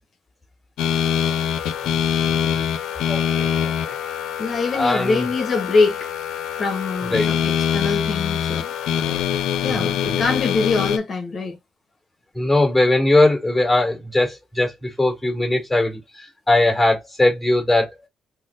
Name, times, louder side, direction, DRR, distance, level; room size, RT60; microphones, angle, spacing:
sound 1, 0.8-11.0, left 9 dB, 90° left, 0.4 m, -24 dB
voice 1, 3.1-3.9 4.7-5.3 7.1-7.4 9.7-10.3 12.3-17.9, left 2 dB, 5° left, 1.9 m, -21 dB
voice 2, 4.4-6.1 6.6-8.7 9.6-11.6, left 4 dB, 45° left, 0.8 m, -23 dB
4.0 x 2.0 x 3.8 m
cardioid pair, 90°, 0 cm